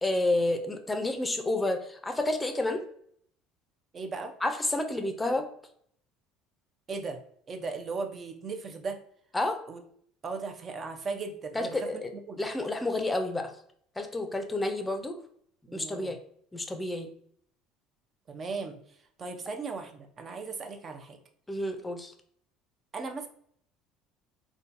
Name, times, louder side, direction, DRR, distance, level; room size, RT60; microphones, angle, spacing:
voice 1, 0.0-2.8 4.4-5.4 9.3-9.6 11.5-12.0 12.4-13.5 14.0-15.2 15.7-16.2 16.5-17.1 21.5-22.1, left 2 dB, 15° left, 6 dB, 0.5 m, -29 dB
voice 2, 3.9-4.3 6.9-7.2 7.5-9.0 9.7-9.8 10.2-12.0 12.3-12.4 15.7-16.1 18.3-18.8 19.2-21.2 22.9-23.3, right 4 dB, 35° right, 5 dB, 0.6 m, -37 dB
3.8 x 2.2 x 2.5 m, 0.64 s
supercardioid pair, 95°, 0 cm